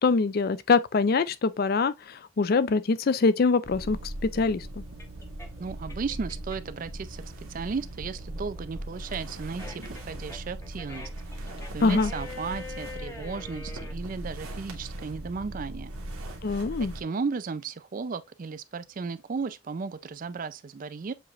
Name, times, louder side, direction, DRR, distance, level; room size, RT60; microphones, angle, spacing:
voice 1, 0.0-4.8 11.8-12.1 16.4-16.9, left 4 dB, 45° left, 0.4 m, -24 dB
sound 1, 3.4-6.8 7.2-14.0, left 3 dB, 15° left, 0.7 m, -45 dB
sound 2, 3.6-17.0, right 1 dB, 85° right, 1.4 m, -39 dB
voice 2, 5.6-7.2 7.5-11.1 11.4-15.9 16.9-21.1, right 5 dB, 40° right, 0.3 m, -35 dB
7.4 x 3.0 x 2.3 m
head